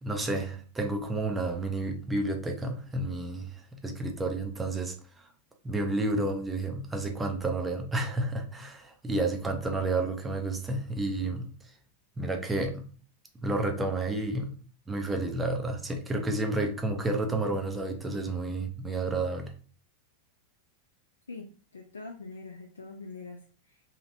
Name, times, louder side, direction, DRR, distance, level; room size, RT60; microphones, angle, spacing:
voice 1, 0.0-5.3 5.6-11.5 12.2-12.9 13.4-14.5 14.9-19.5, right 2 dB, 10° right, 3 dB, 0.6 m, -31 dB
voice 2, 21.3-23.8, left 3 dB, 70° left, 2 dB, 0.4 m, -44 dB
2.9 x 2.8 x 2.6 m, 0.39 s
figure-of-eight pair, 90°, 0 cm